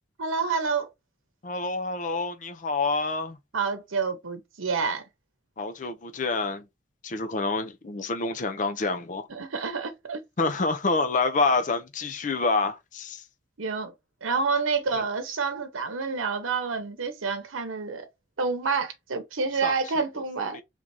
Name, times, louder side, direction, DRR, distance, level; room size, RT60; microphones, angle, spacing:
voice 1, 0.2-0.9 3.5-5.0 9.3-10.2 13.6-13.9 14.2-18.1 18.4-20.6, right 4 dB, 85° right, 0.8 m, -28 dB
voice 2, 1.4-3.4 5.6-6.6 7.0-9.3 10.4-13.2 15.0-15.1 19.6-19.7 20.5-20.6, left 3 dB, 40° left, 0.5 m, -27 dB
3.6 x 2.7 x 4.6 m
head